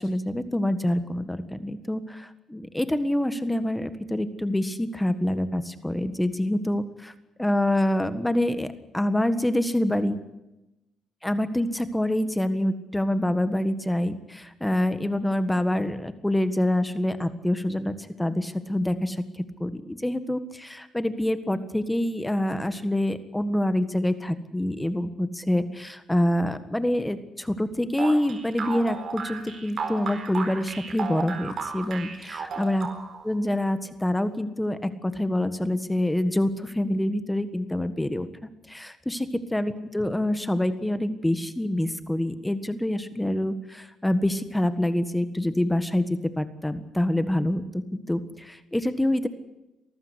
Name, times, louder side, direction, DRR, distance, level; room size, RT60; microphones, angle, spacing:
voice 1, 0.0-7.1 7.4-10.2 11.2-32.9 33.2-46.0 46.4-49.3, left 1 dB, 10° left, 11 dB, 1.6 m, -26 dB
sound 1, 28.0-33.3, right 5 dB, 55° right, 4.2 m, -33 dB
23.5 x 15.0 x 9.7 m, 0.94 s
cardioid pair, 90°, 0 cm